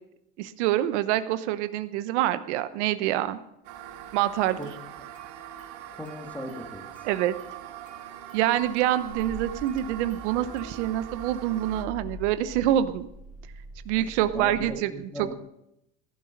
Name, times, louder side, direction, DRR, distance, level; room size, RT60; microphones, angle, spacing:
voice 1, 0.4-3.4 4.1-4.6 7.0-7.4 8.3-13.1 13.9-14.9, right 12 dB, 85° right, 12 dB, 0.9 m, -26 dB
sound 1, 3.6-11.8, right 11 dB, 65° right, 1.8 m, -42 dB
Car / Engine starting, 3.9-4.2 4.5-5.3 5.6-6.6 6.9-14.7, left 1 dB, 20° left, 2.8 m, -45 dB
voice 2, 6.0-7.1 14.0-14.1 14.3-15.3, equal, 5° left, 2 dB, 2.0 m, -38 dB
15.5 x 11.0 x 5.2 m, 0.83 s
cardioid pair, 150°, 34 cm